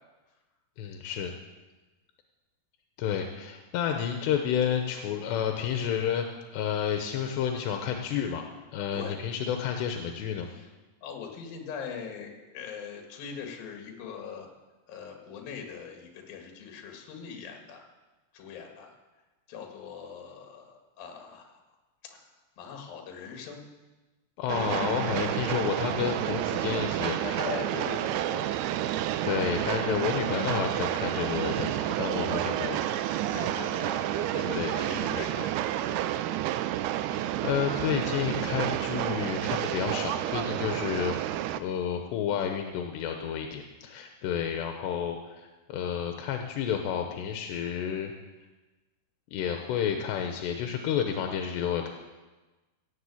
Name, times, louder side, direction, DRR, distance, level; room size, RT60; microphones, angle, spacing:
voice 1, 0.8-1.3 3.0-6.3 6.5-8.5 8.7-10.5 24.4-27.2 29.2-33.0 34.5-34.9 37.1-48.1 49.3-51.9, left 8 dB, 85° left, 4 dB, 3.0 m, -30 dB
voice 2, 11.0-14.5 14.9-17.8 18.3-19.0 19.5-21.6 22.0-22.2 22.6-23.7 27.2-28.5 28.9-29.1 33.3-36.0, left 6 dB, 65° left, 2 dB, 3.4 m, -41 dB
Train, 24.5-41.6, right 13 dB, 80° right, 2.5 m, -30 dB
16.0 x 7.7 x 8.4 m, 1.2 s
omnidirectional pair, 4.9 m